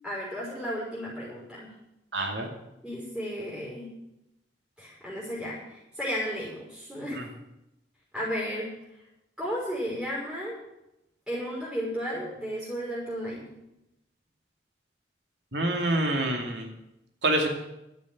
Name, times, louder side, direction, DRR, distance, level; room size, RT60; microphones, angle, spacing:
voice 1, 0.0-1.7 2.8-3.9 4.8-7.2 8.1-8.7 9.4-10.6 11.3-13.5, equal, 5° right, -7 dB, 5.9 m, -34 dB
voice 2, 2.1-2.5 7.1-7.2 15.5-16.7 17.2-17.5, right 1 dB, 85° right, 2 dB, 2.5 m, -26 dB
12.0 x 8.8 x 9.4 m, 0.87 s
head